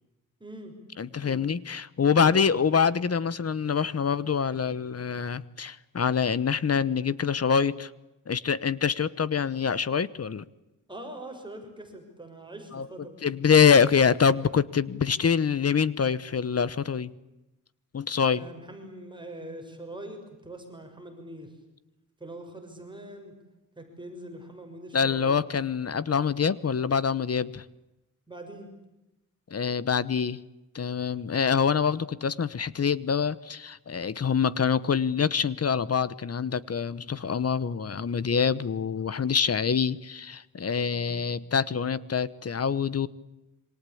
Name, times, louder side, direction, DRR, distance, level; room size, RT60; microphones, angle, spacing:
voice 1, 0.4-0.7 1.1-1.5 2.2-2.5 10.9-13.3 18.3-21.6 22.2-23.3 23.8-25.3 28.3-28.7 40.8-41.2, right 1 dB, 15° right, 6.3 m, -43 dB
voice 2, 1.0-7.9 8.3-10.4 12.7-12.9 13.2-17.1 17.9-18.5 24.9-27.6 29.5-30.4 30.7-43.1, left 6 dB, 50° left, 1.1 m, -25 dB
27.5 x 25.0 x 8.6 m
wide cardioid pair, 135°, 32 cm